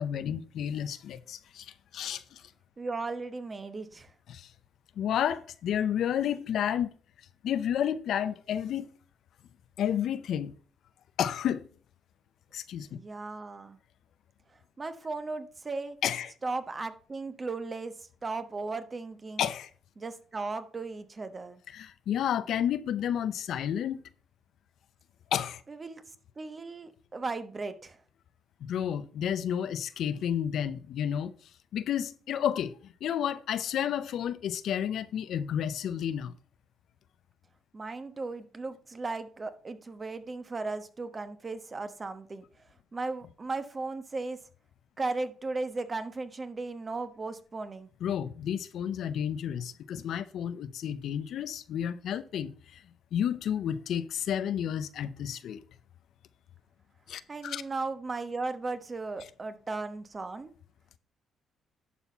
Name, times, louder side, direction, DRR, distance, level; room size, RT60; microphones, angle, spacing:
voice 1, 0.0-2.4 4.3-4.5 5.0-6.9 7.4-8.9 9.8-10.5 11.2-11.7 12.5-13.0 16.0-16.3 19.4-19.7 21.7-24.0 25.3-25.6 28.6-31.3 31.7-36.3 48.0-52.8 53.1-55.6 57.1-57.6, left 9 dB, 75° left, 0.6 m, -31 dB
voice 2, 2.8-4.1 12.9-13.8 14.8-16.0 16.4-17.9 18.2-19.5 20.0-21.6 25.7-26.0 26.4-28.0 37.7-42.4 42.9-44.4 45.0-47.9 57.3-60.5, right 3 dB, 30° right, 1.1 m, -36 dB
11.5 x 4.2 x 5.5 m
cardioid pair, 90°, 0 cm